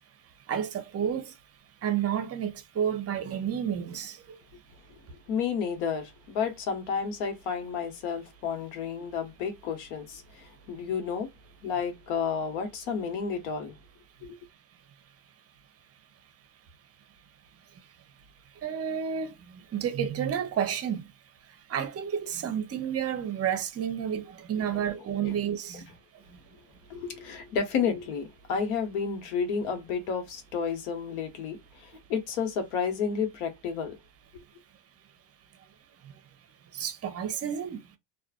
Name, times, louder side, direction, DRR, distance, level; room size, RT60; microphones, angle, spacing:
voice 1, 0.5-1.3 1.8-4.4 18.6-21.0 21.7-25.8 36.7-37.8, right 8 dB, 35° right, 0.7 m, -30 dB
voice 2, 5.3-11.3 11.6-13.8 14.2-14.4 24.7-24.9 25.2-25.3 26.9-34.0 34.3-34.4, left 6 dB, 85° left, 1.1 m, -31 dB
2.4 x 2.4 x 2.3 m
supercardioid pair, 100°, 44 cm